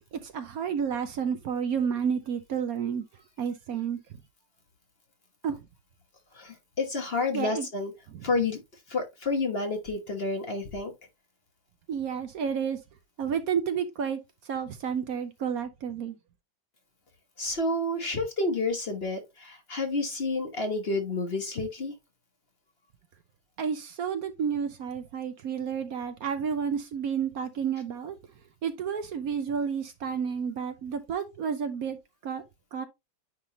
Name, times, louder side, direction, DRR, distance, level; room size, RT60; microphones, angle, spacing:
voice 1, 0.1-3.0 3.4-4.2 5.4-5.6 7.3-7.7 11.9-12.8 13.2-14.2 14.5-16.2 23.6-28.2 28.6-32.4 32.7-32.9, right 7 dB, 60° right, 1.1 m, -31 dB
voice 2, 6.3-7.9 8.2-10.9 17.4-21.9, left 3 dB, 40° left, 1.3 m, -30 dB
9.8 x 3.7 x 2.8 m
omnidirectional pair, 1.9 m